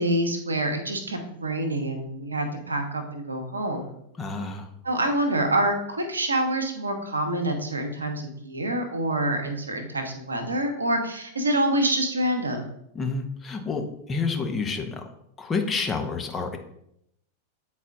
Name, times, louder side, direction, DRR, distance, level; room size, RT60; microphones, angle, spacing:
voice 1, 0.0-3.9 4.8-12.7, right 1 dB, 75° right, 5 dB, 1.0 m, -26 dB
voice 2, 4.2-4.7 12.9-15.1 15.4-16.6, left 4 dB, 20° left, 4 dB, 0.9 m, -29 dB
8.3 x 4.2 x 3.7 m, 0.74 s
figure-of-eight pair, 90°, 0 cm